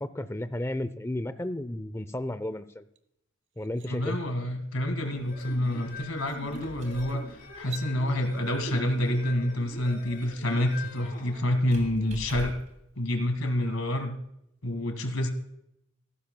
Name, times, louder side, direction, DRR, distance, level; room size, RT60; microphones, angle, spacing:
voice 1, 0.0-2.8 3.6-4.2, left 1 dB, 10° left, 12 dB, 0.5 m, -33 dB
sound 1, 3.0-3.1 3.5-3.9 5.5-5.6 6.1-6.4 7.5-7.9, right 10 dB, 60° right, 1.0 m, -45 dB
voice 2, 3.9-12.5 13.0-14.2 14.6-15.3, left 1 dB, 85° left, 7 dB, 2.0 m, -28 dB
sound 2, 5.1-11.9, left 2 dB, 45° left, 3.0 m, -43 dB
Squeak, 6.2-12.8, equal, 35° right, 2.9 m, -46 dB
15.0 x 13.0 x 2.2 m, 0.78 s
head